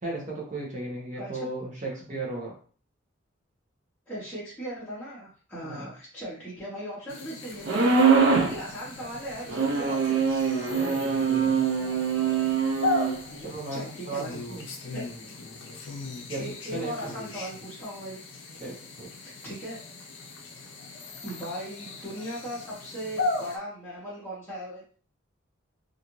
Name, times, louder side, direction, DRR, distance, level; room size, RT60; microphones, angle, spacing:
voice 1, 0.0-2.6 5.6-5.9 10.7-11.6 13.4-14.7 16.3-16.4 16.7-17.1 18.6-19.1, right 2 dB, 40° right, -3 dB, 0.8 m, -36 dB
voice 2, 4.1-10.5 13.3-14.3 14.7-15.0 16.4-18.2 19.2-19.8 21.2-24.8, equal, 10° left, -11 dB, 0.9 m, -38 dB
sound 1, 7.1-23.6, left 3 dB, 65° left, 0.5 m, -37 dB
sound 2, 7.7-8.6 9.5-13.2, right 5 dB, 65° right, 0.4 m, -23 dB
2.5 x 2.5 x 2.9 m, 0.42 s
head